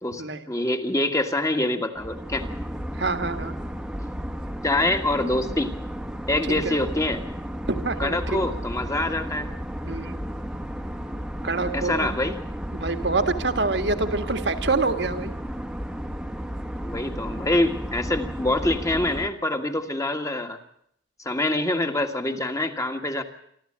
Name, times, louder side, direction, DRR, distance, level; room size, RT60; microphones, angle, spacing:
voice 1, 0.0-2.5 4.6-5.7 6.3-7.2 8.0-9.5 11.7-12.4 16.8-20.6 21.2-23.2, left 1 dB, 15° left, 6 dB, 1.7 m, -25 dB
sound 1, 2.0-19.3, equal, 5° right, 1.2 m, -33 dB
voice 2, 2.9-3.6 6.5-6.7 7.7-8.4 9.8-10.2 11.4-12.2 12.7-15.3, right 3 dB, 60° right, 8 dB, 1.8 m, -26 dB
27.0 x 13.0 x 8.8 m, 0.70 s
head